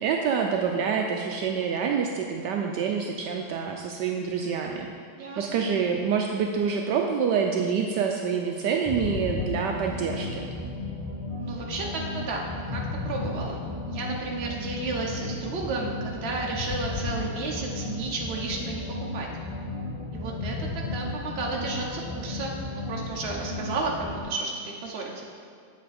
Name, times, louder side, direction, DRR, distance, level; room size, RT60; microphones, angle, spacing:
voice 1, 0.0-4.9 5.4-10.5, right 6 dB, 75° right, 2 dB, 1.1 m, -27 dB
voice 2, 5.1-5.7 11.4-19.3 20.1-22.6 22.9-25.3, right 3 dB, 40° right, -1 dB, 1.1 m, -33 dB
sound 1, 8.9-24.2, left 2 dB, 10° right, 2.0 m, -34 dB
8.3 x 7.5 x 4.2 m, 2.2 s
omnidirectional pair, 2.0 m